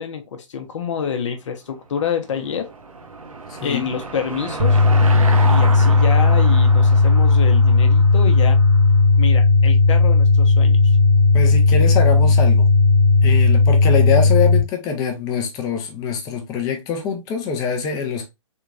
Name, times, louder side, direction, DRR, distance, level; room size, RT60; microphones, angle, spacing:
voice 1, 0.0-2.7 3.6-4.8 5.4-8.6 9.2-11.0, left 7 dB, 60° left, 0.8 m, -27 dB
Car passing by / Engine, 2.0-8.8, right 4 dB, 85° right, 0.9 m, -31 dB
voice 2, 3.5-3.9 11.3-12.7 13.2-18.3, left 6 dB, 20° left, 0.6 m, -24 dB
sound 1, 4.6-14.6, left 3 dB, 40° right, 1.3 m, -14 dB
3.6 x 2.9 x 2.4 m
hypercardioid pair, 135°, 17 cm